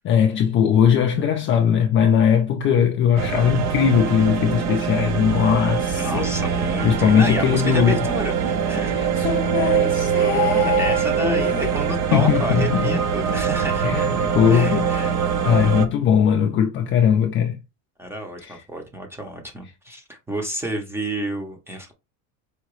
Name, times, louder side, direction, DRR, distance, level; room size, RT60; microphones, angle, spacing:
voice 1, 0.0-6.3 6.8-8.0 8.9-13.0 13.8-15.1 15.4-17.6 18.4-18.6, left 8 dB, 30° left, 0.4 m, -20 dB
sound 1, 3.2-15.9, right 7 dB, 40° right, 0.7 m, -23 dB
voice 2, 6.0-9.3 10.3-15.1 18.0-21.9, right 1 dB, 5° right, 0.7 m, -30 dB
4.8 x 2.9 x 3.0 m
cardioid pair, 160°, 39 cm